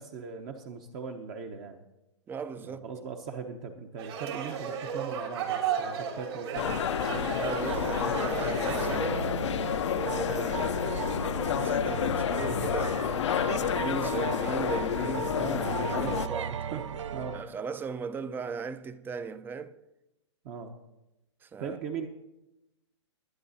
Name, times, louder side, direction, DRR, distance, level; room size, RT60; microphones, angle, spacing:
voice 1, 0.0-1.8 2.6-7.4 15.3-16.8 17.1-17.5 20.4-20.8 21.6-22.1, right 6 dB, 40° right, 0.9 m, -39 dB
voice 2, 2.3-2.8 7.4-9.3 9.8-15.4 15.8-16.5 17.3-19.8 21.4-21.8, right 5 dB, 15° right, 0.4 m, -37 dB
sound 1, 4.0-9.0, right 7 dB, 60° right, 2.8 m, -34 dB
sound 2, 6.5-16.3, left 9 dB, 70° left, 0.6 m, -30 dB
sound 3, 7.6-17.4, right 8 dB, 75° right, 0.5 m, -37 dB
20.5 x 9.8 x 2.8 m
hypercardioid pair, 125°, 15 cm